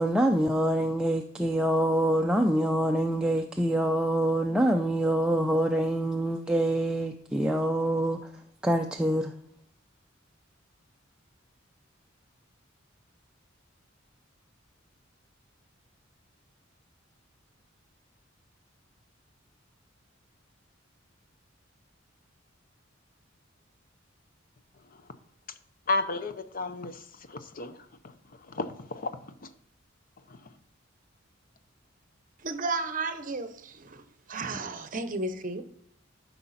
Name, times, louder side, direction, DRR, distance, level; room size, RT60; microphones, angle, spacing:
voice 1, 0.0-8.2 8.6-9.3, right 1 dB, 5° right, 0.4 m, -25 dB
voice 2, 25.9-27.8 28.5-29.5 30.3-30.4, left 3 dB, 45° left, 0.7 m, -33 dB
voice 3, 32.4-34.0 34.3-35.6, right 3 dB, 45° right, 0.9 m, -33 dB
12.5 x 5.7 x 4.2 m
head